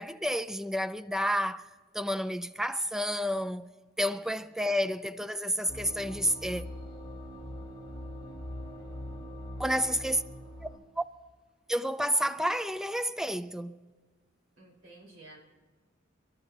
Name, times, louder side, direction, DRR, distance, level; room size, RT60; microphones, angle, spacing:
voice 1, 0.0-1.7 1.9-3.7 4.0-6.6 9.6-10.2 10.6-10.7 11.0-11.1 11.7-13.8, equal, 5° right, 0.4 m, -30 dB
sound 1, 5.7-10.8, equal, 25° left, 3.8 m, -42 dB
voice 2, 14.6-15.4, right 2 dB, 70° right, 4.6 m, -52 dB
30.0 x 13.0 x 2.9 m
head